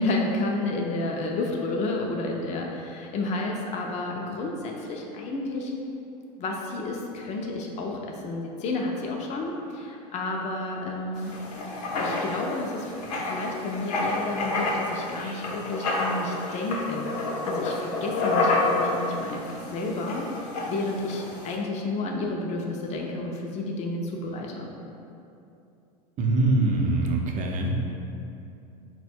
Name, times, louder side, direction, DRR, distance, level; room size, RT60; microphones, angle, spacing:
voice 1, 0.0-5.7 6.4-11.3 11.6-11.7 12.0-12.9 13.2-17.1 17.4-20.3 20.7-24.7, left 2 dB, 35° left, 0 dB, 0.5 m, -31 dB
Writing, 11.2-21.5, left 2 dB, 75° left, 0.8 m, -29 dB
voice 2, 26.2-27.7, right 2 dB, 40° right, 1 dB, 0.6 m, -23 dB
4.2 x 2.2 x 4.2 m, 2.7 s
hypercardioid pair, 95°, 20 cm